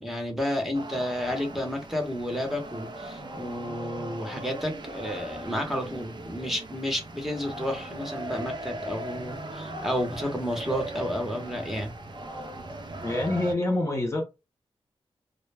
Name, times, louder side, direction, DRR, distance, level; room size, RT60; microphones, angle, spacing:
voice 1, 0.0-11.9, equal, ahead, 0.8 m, -31 dB
sound 1, 0.7-13.5, right 1 dB, 45° right, 0.5 m, -39 dB
voice 2, 13.0-14.2, left 1 dB, 25° left, 0.6 m, -26 dB
2.1 x 2.1 x 3.2 m
wide cardioid pair, 85°, 10 cm